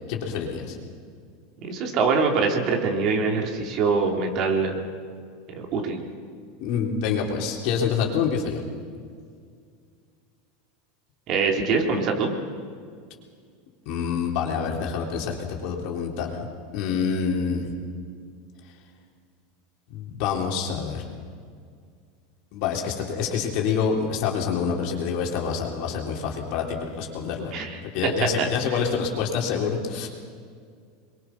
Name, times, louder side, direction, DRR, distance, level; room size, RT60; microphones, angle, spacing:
voice 1, 0.1-0.8 6.6-8.6 13.9-16.4 16.7-17.7 19.9-21.0 22.5-27.5 27.9-30.1, left 6 dB, 60° left, 0 dB, 3.7 m, -27 dB
voice 2, 1.6-4.8 5.6-6.0 11.3-12.3 27.5-28.5, right 4 dB, 50° right, 2 dB, 3.5 m, -24 dB
23.0 x 22.0 x 6.1 m, 2.1 s
hypercardioid pair, 100°, 0 cm